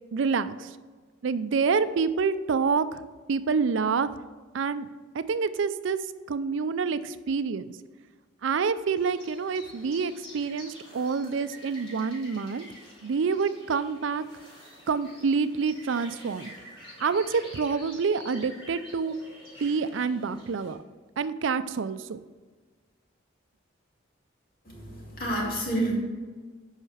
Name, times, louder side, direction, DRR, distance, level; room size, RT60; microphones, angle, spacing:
voice 1, 0.1-0.8 1.2-3.0 3.3-4.1 4.5-4.9 5.1-6.0 6.3-7.7 8.4-12.7 13.0-14.2 14.9-16.5 17.0-19.2 19.6-20.8 21.2-22.2, right 5 dB, 70° right, 13 dB, 0.4 m, -27 dB
sound 1, 9.0-20.7, equal, 25° left, 2.6 m, -48 dB
voice 2, 24.6-25.9, right 1 dB, 45° left, -3 dB, 2.4 m, -29 dB
8.3 x 5.7 x 4.9 m, 1.4 s
head